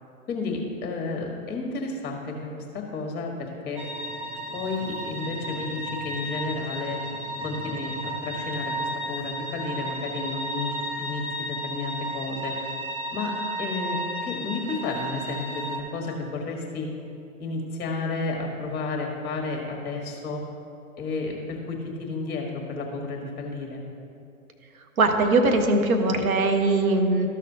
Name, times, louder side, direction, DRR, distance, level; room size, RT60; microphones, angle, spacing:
voice 1, 0.3-3.8 4.5-7.0 7.4-12.6 13.1-16.9 17.4-20.4 21.0-23.8, left 3 dB, 20° left, 0 dB, 1.4 m, -32 dB
sound 1, 3.8-15.8, right 1 dB, 25° right, 0.7 m, -33 dB
voice 2, 25.0-27.3, right 2 dB, 70° right, 6 dB, 1.1 m, -21 dB
13.0 x 6.5 x 2.8 m, 2.7 s
hypercardioid pair, 125°, 44 cm